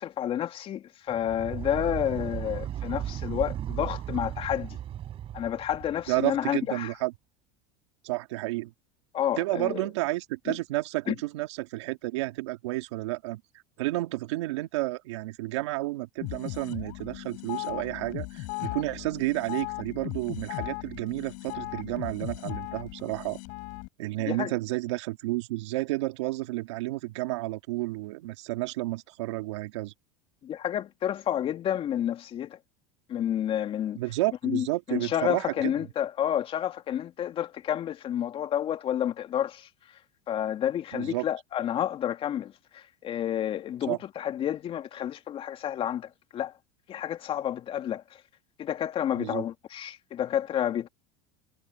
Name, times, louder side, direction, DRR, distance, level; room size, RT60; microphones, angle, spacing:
voice 1, 0.0-4.8 5.3-6.9 9.1-9.9 10.5-10.6 11.1-11.2 24.2-24.5 30.4-32.6 33.1-34.0 34.4-40.0 40.3-46.5 46.9-48.2 48.6-50.9, left 10 dB, 40° left, 2.4 m, -30 dB
sound 1, 1.1-6.3, right 11 dB, 40° right, 5.7 m, -36 dB
voice 2, 6.1-7.1 8.0-8.7 9.4-13.4 13.8-23.4 24.0-29.9 34.0-35.7 40.9-41.3 43.9-44.0 49.1-49.5, right 20 dB, 80° right, 2.2 m, -31 dB
sound 2, 16.2-23.9, left 29 dB, 65° left, 7.3 m, -37 dB
supercardioid pair, 115°, 15 cm